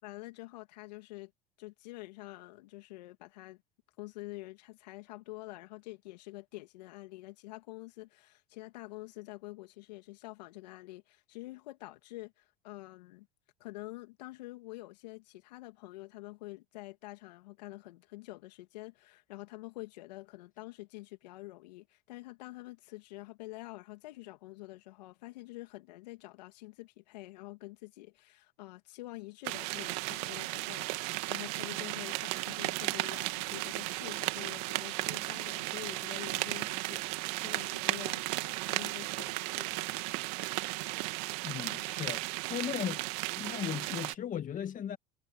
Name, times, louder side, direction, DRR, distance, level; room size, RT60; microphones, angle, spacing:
voice 1, 0.0-1.3 1.6-3.6 4.0-13.3 13.6-39.9, left 20 dB, 85° left, 2.8 m, -47 dB
sound 1, 29.4-44.1, right 23 dB, 75° right, 1.9 m, -35 dB
voice 2, 41.4-42.2 42.5-43.0 43.4-45.0, left 9 dB, 40° left, 1.9 m, -36 dB
supercardioid pair, 95°, 21 cm